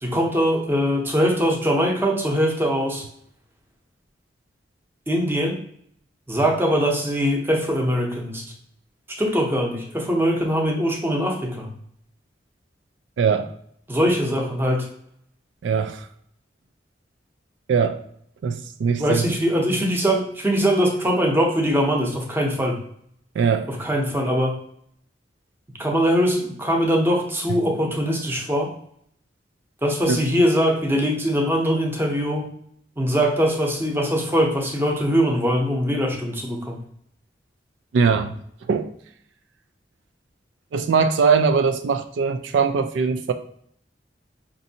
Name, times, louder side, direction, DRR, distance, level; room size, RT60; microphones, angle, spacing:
voice 1, 0.0-3.1 5.1-5.6 6.3-8.4 9.1-11.7 13.9-14.9 19.0-22.8 23.7-24.6 25.8-28.7 29.8-32.5 33.0-36.8, equal, 15° right, 1 dB, 0.7 m, -22 dB
voice 2, 13.2-13.5 15.6-16.1 17.7-18.0 18.4-19.3 23.4-23.7 27.5-27.6 30.1-30.2 37.9-38.3 38.7-38.9 40.7-43.3, right 5 dB, 85° right, 8 dB, 0.3 m, -21 dB
5.1 x 2.6 x 2.7 m, 0.66 s
head